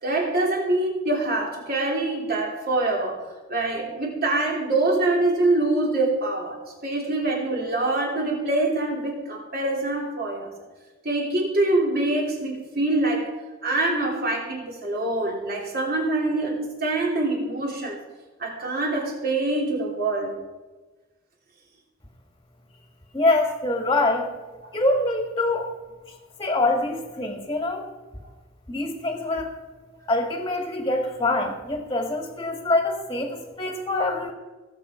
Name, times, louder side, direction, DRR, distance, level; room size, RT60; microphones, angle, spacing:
voice 1, 0.0-6.6 6.8-10.5 11.0-13.3 13.6-18.0 18.4-20.4 24.6-24.8, right 2 dB, 50° right, -1 dB, 3.2 m, -25 dB
voice 2, 23.1-24.3 24.7-25.7 26.4-27.9 28.7-29.5 30.1-34.3, left 2 dB, 20° left, 3 dB, 1.6 m, -24 dB
17.5 x 7.5 x 5.0 m, 1.2 s
head